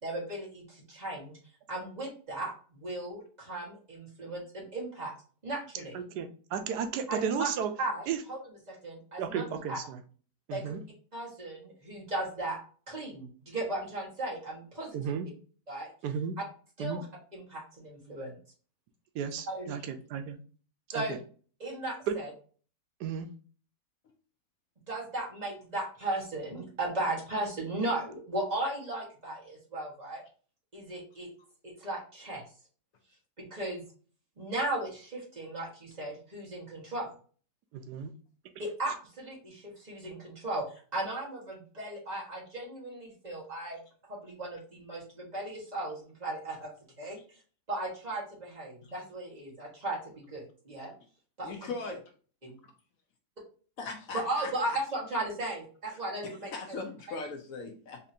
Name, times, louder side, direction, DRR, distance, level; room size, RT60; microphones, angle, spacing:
voice 1, 0.0-1.3 1.7-5.1 5.4-5.9 7.1-7.5 7.8-9.8 10.5-10.8 11.1-12.6 12.9-15.0 15.7-15.9 16.8-17.1 17.3-18.4 19.5-19.7 20.9-21.2 21.6-22.3 24.9-30.2 30.7-31.3 31.6-32.4 33.4-33.8 34.4-37.1 38.6-40.6 40.9-43.8 44.1-46.7 47.0-47.2 47.7-50.9 51.4-51.7 54.1-56.8 57.1-57.2, right 2 dB, 30° right, -4 dB, 1.3 m, -36 dB
voice 2, 5.9-7.7 8.1-8.2 9.2-10.0 10.5-10.8 14.9-15.3 16.0-16.4 16.8-17.0 19.1-20.4 20.9-21.2 22.1-22.2 23.0-23.3 37.9-38.1, right 7 dB, 85° right, 7 dB, 1.2 m, -33 dB
voice 3, 51.4-52.0 53.8-54.8 55.9-58.0, left 4 dB, 65° left, 5 dB, 1.0 m, -40 dB
4.2 x 2.8 x 2.6 m, 0.41 s
omnidirectional pair, 1.7 m